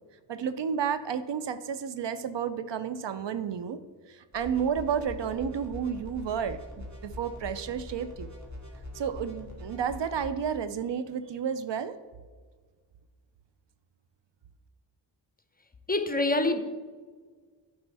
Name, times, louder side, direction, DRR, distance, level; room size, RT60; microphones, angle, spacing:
voice 1, 0.3-3.8 4.1-8.3 8.9-12.0, right 7 dB, 65° right, 12 dB, 0.6 m, -31 dB
sound 1, 4.3-10.3, left 1 dB, 35° right, 2.3 m, -43 dB
voice 2, 15.9-16.6, left 2 dB, 20° left, 8 dB, 0.8 m, -25 dB
9.5 x 5.6 x 3.4 m, 1.5 s
cardioid pair, 50°, 48 cm